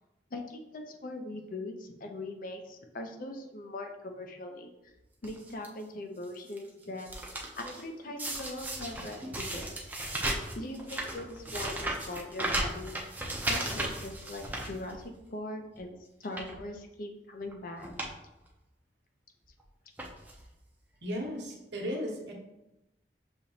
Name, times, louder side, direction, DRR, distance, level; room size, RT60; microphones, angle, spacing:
voice 1, 0.3-4.7 5.2-7.1 7.6-9.7 10.5-12.9 13.4-17.9, left 2 dB, 50° left, 4 dB, 0.6 m, -41 dB
sound 1, 5.2-5.7 6.2-6.6 6.8-7.8 8.2-15.3 15.7-15.8 16.2-16.6 17.4-17.5 17.8-18.1 18.5-18.6 19.4-19.6 20.0-20.5 21.2-21.3 21.5-21.6, right 1 dB, 10° right, 0.6 m, -36 dB
voice 2, 21.0-22.3, equal, 75° right, 0 dB, 1.1 m, -35 dB
6.7 x 2.9 x 2.7 m, 0.92 s
head